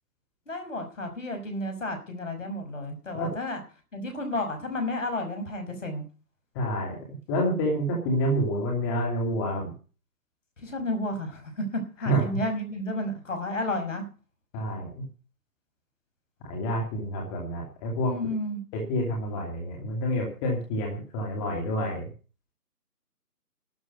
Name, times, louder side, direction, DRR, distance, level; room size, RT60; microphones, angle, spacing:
voice 1, 0.5-3.6 3.9-6.1 10.6-14.0 18.0-18.6, left 1 dB, 55° left, 6 dB, 5.8 m, -32 dB
voice 2, 6.5-7.0 7.3-9.7 12.0-12.3 14.5-15.0 16.5-18.2 18.7-22.1, equal, 15° left, -2 dB, 2.7 m, -28 dB
12.5 x 7.9 x 9.6 m, 0.36 s
figure-of-eight pair, 155°, 46 cm